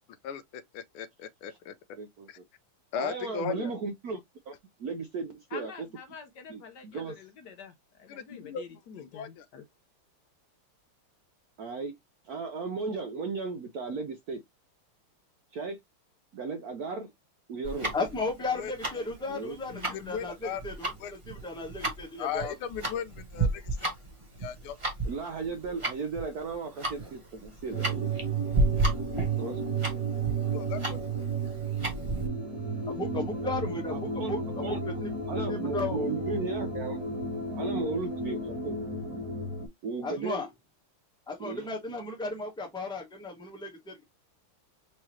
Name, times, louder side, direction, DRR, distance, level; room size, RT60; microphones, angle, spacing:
voice 1, 0.2-1.7 2.3-2.4 2.9-3.7 8.1-8.6 9.0-9.5 18.6-19.1 19.7-20.6 21.0-21.1 22.2-23.9 24.4-24.8 30.5-31.2, left 8 dB, 80° left, 1.5 m, -37 dB
voice 2, 2.0-2.4 2.9-4.2 4.5-4.6 4.8-5.7 6.5-7.2 11.6-11.9 12.3-14.4 15.5-15.8 16.3-17.1 17.5-17.9 19.3-19.6 25.0-28.1 29.4-29.6 33.9-34.3 34.6-34.8 35.3-37.0 37.6-38.8 39.8-40.4 41.4-41.7, right 4 dB, 70° right, 0.9 m, -35 dB
voice 3, 5.5-9.6, left 6 dB, 65° left, 1.1 m, -47 dB
Tick-tock, 17.6-32.3, right 2 dB, 15° right, 1.3 m, -33 dB
voice 4, 17.9-22.5 32.9-36.1 40.0-40.5 41.3-44.0, left 2 dB, 5° left, 0.8 m, -35 dB
sound 1, 27.7-39.7, right 4 dB, 40° right, 2.0 m, -32 dB
4.8 x 2.8 x 3.1 m
omnidirectional pair, 2.4 m